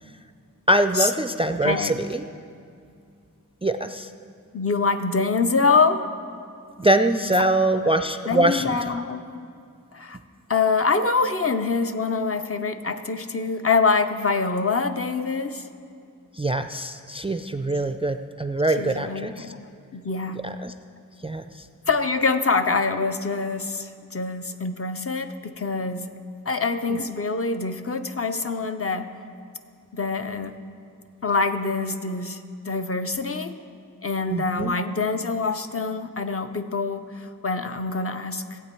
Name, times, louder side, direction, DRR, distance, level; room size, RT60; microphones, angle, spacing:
voice 1, 0.7-2.2 3.6-4.1 6.8-8.8 16.4-19.5 20.4-20.7 21.2-21.6 26.9-27.0 34.3-34.7, right 1 dB, 15° right, 8 dB, 0.3 m, -23 dB
voice 2, 4.5-6.1 8.3-9.3 9.9-10.2 10.5-15.7 18.8-20.4 21.9-26.1 26.5-29.1 29.9-30.5 31.2-32.4 32.7-33.6 34.0-38.6, left 4 dB, 40° left, 8 dB, 0.6 m, -25 dB
15.0 x 8.3 x 4.4 m, 2.3 s
wide cardioid pair, 60°, 35 cm